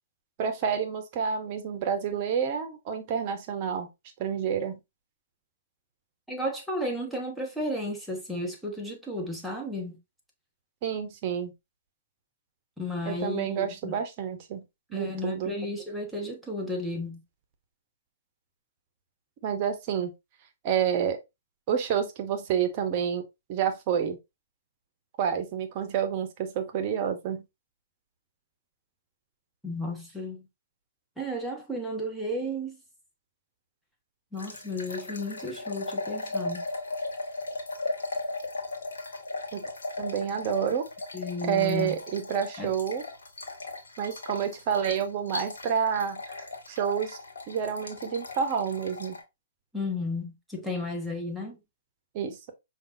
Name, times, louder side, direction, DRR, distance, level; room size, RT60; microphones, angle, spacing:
voice 1, 0.4-3.9 4.2-4.8 10.8-11.5 13.1-14.6 14.9-15.5 19.4-20.1 20.6-21.2 21.7-23.2 23.5-24.2 25.2-27.4 39.5-39.6 40.0-40.8 41.4-43.0 44.0-47.2 47.5-49.2 52.1-52.5, right 8 dB, 40° right, 0.8 m, -29 dB
voice 2, 6.3-10.0 12.8-14.0 14.9-17.2 29.6-30.4 31.2-32.8 34.3-36.6 41.1-42.0 42.6-42.7 49.7-51.6, left 1 dB, ahead, 1.0 m, -33 dB
sound 1, 34.4-49.2, left 2 dB, 75° left, 0.9 m, -37 dB
5.0 x 2.4 x 2.6 m
figure-of-eight pair, 120°, 0 cm